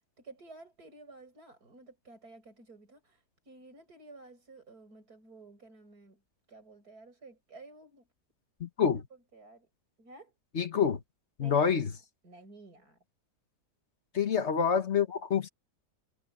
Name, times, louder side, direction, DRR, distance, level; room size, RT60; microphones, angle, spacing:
voice 1, 0.2-6.2 6.5-8.1 9.1-9.7 10.0-10.3 11.4-13.0 14.2-14.4, right 2 dB, 65° right, 7.6 m, -53 dB
voice 2, 8.6-9.0 10.5-11.0 11.4-11.9 14.1-15.5, left 7 dB, 45° left, 1.4 m, -27 dB
omnidirectional pair, 1.8 m